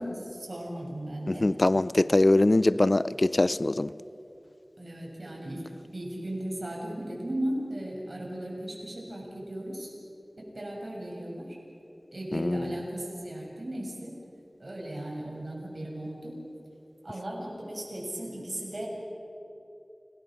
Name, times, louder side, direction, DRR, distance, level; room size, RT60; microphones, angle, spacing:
voice 1, 0.0-1.5 4.8-9.9 10.4-11.5 12.1-14.1 14.6-16.4 17.0-18.9, right 1 dB, 65° right, -2 dB, 6.6 m, -36 dB
voice 2, 1.3-3.9 12.3-12.7, left 2 dB, 55° left, 17 dB, 0.5 m, -23 dB
29.5 x 18.5 x 6.5 m, 2.9 s
wide cardioid pair, 40°, 0 cm